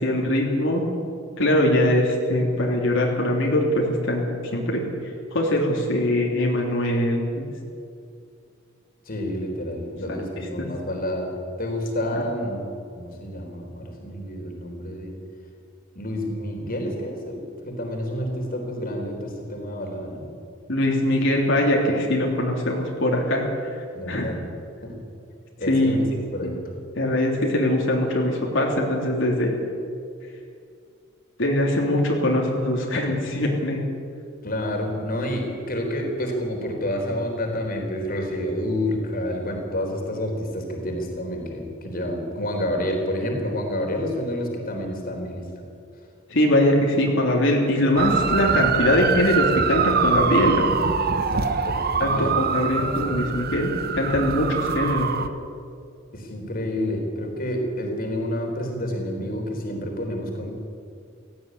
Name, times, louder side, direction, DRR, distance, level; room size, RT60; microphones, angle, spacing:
voice 1, 0.0-0.8 1.4-4.3 4.5-4.8 5.3-7.4 12.1-12.2 20.7-23.4 24.1-24.3 25.6-25.9 26.4-26.6 26.9-29.5 31.4-33.8 46.3-50.7 52.0-55.1, left 1 dB, 65° left, -1 dB, 3.4 m, -22 dB
voice 2, 9.1-11.3 11.6-12.6 13.0-15.1 15.9-20.3 23.9-24.4 24.8-24.9 25.6-26.1 26.3-26.5 34.4-45.4 51.0-52.4 52.8-52.9 56.1-60.5, left 1 dB, 45° left, 2 dB, 4.0 m, -29 dB
sound 1, 48.0-55.3, right 5 dB, 50° right, 1.1 m, -24 dB
17.5 x 15.5 x 9.7 m, 2.3 s
head